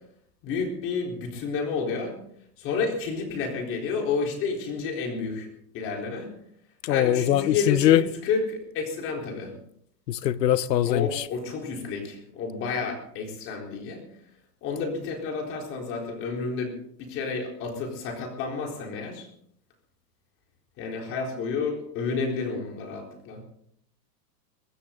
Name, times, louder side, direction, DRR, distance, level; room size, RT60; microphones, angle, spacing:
voice 1, 0.4-2.2 2.6-5.5 5.7-6.3 6.9-9.5 10.8-14.0 14.6-19.3 20.8-23.4, left 4 dB, 25° left, 4.0 m, -30 dB
voice 2, 6.8-8.0 10.1-11.3, left 12 dB, 85° left, 1.1 m, -22 dB
23.0 x 13.5 x 3.8 m
supercardioid pair, 170°, 48 cm